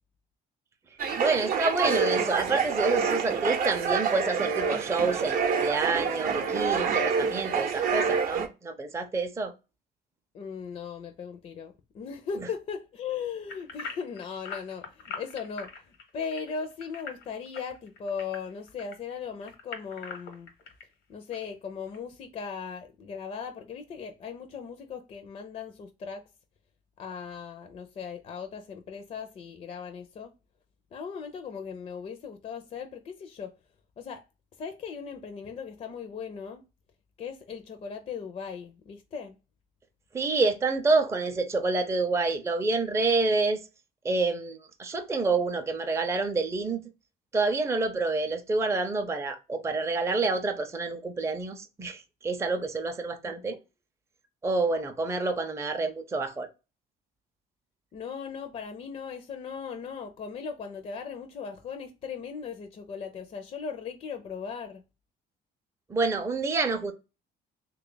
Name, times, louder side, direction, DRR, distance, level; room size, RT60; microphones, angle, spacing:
sound 1, 1.0-8.5, right 6 dB, 55° right, 0.6 m, -27 dB
voice 1, 1.2-9.5 40.1-43.6 44.0-46.8 47.3-53.6 54.4-56.5 65.9-66.9, right 3 dB, 15° right, 0.5 m, -28 dB
voice 2, 10.3-20.5 21.1-26.2 27.0-30.3 30.9-33.5 34.0-34.2 34.6-36.6 37.2-39.4 53.2-53.5 57.9-64.8, left 6 dB, 40° left, 0.4 m, -38 dB
sound 2, 13.5-18.9 19.4-20.8 21.3-21.4 21.9-22.0, left 5 dB, 90° left, 0.9 m, -41 dB
3.2 x 2.3 x 3.8 m
cardioid pair, 110°, 17 cm